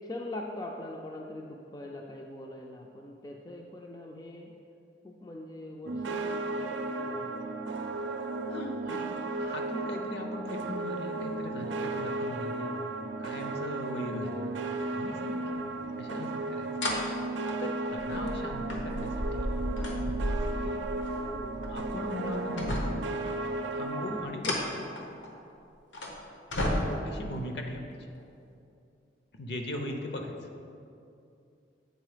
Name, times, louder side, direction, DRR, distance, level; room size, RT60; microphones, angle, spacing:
voice 1, 0.0-4.5 5.0-7.6 14.2-14.3 16.4-16.8 17.4-17.7 21.3-21.6 26.8-27.2 29.9-30.4, left 1 dB, 20° left, 0 dB, 0.3 m, -43 dB
sound 1, 5.9-24.3, right 2 dB, 85° right, 0.5 m, -34 dB
voice 2, 8.5-9.1 9.4-12.7 13.2-15.7 16.0-16.9 17.6-20.3 20.6-20.8 21.7-22.9 23.7-24.7 27.1-27.8 29.4-30.5, left 1 dB, 65° left, 3 dB, 0.7 m, -39 dB
sound 2, 15.8-15.9 16.8-17.0 17.5-22.0 22.3-23.1 24.2-25.4 25.9-26.1 26.5-27.2 28.2-28.3, left 1 dB, 85° left, 1.0 m, -33 dB
8.1 x 3.9 x 5.0 m, 2.6 s
head